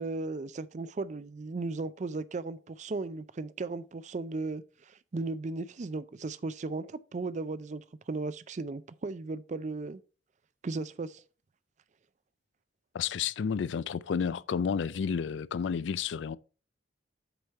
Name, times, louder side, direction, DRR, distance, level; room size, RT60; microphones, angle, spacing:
voice 1, 0.0-10.0 10.6-11.2, right 3 dB, 40° right, 0.4 m, -36 dB
voice 2, 12.9-16.4, left 6 dB, 70° left, 0.4 m, -31 dB
7.9 x 4.9 x 4.1 m
head